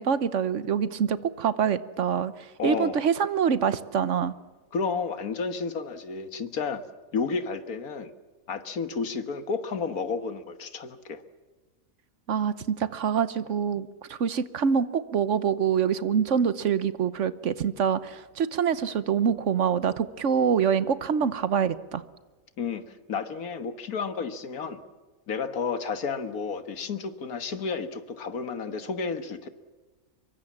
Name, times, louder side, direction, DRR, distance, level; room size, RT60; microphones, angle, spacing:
voice 1, 0.0-2.3 2.6-4.3 12.3-22.0, right 7 dB, 60° right, 14 dB, 1.2 m, -25 dB
voice 2, 2.6-3.0 4.7-6.8 7.1-8.1 8.5-11.2 22.6-24.8 25.3-29.5, left 5 dB, 85° left, 10 dB, 1.9 m, -31 dB
25.0 x 23.0 x 7.4 m, 1.3 s
omnidirectional pair, 1.5 m